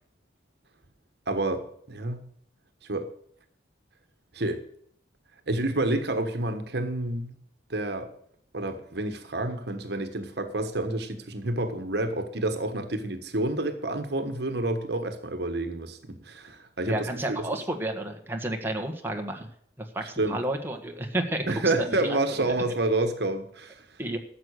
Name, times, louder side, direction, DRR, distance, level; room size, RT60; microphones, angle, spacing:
voice 1, 1.3-2.2 2.9-3.1 4.3-4.6 5.5-7.3 7.7-8.1 8.5-17.4 20.2-20.4 21.5-23.8, right 2 dB, 60° right, 8 dB, 1.4 m, -29 dB
voice 2, 16.8-19.5 19.8-21.4 21.8-22.1 24.0-24.2, right 1 dB, 10° right, 3 dB, 1.5 m, -31 dB
13.5 x 7.8 x 6.5 m, 0.67 s
head